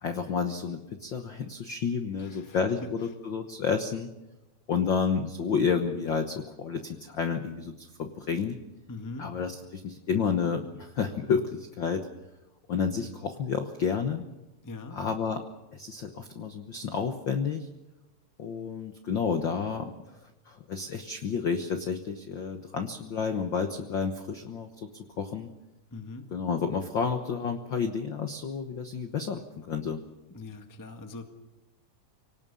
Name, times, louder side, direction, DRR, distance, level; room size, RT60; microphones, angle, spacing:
voice 1, 0.0-4.1 4.7-8.6 9.2-12.1 12.7-14.2 14.9-15.4 15.7-17.7 18.4-19.9 20.5-24.9 25.2-25.5 26.3-30.0, left 6 dB, 75° left, 6 dB, 1.0 m, -30 dB
voice 2, 2.2-2.9 8.9-9.3 14.6-15.0 25.9-26.3 30.3-31.3, left 3 dB, 25° left, 6 dB, 0.4 m, -42 dB
24.5 x 18.5 x 6.9 m, 1.0 s
omnidirectional pair, 3.9 m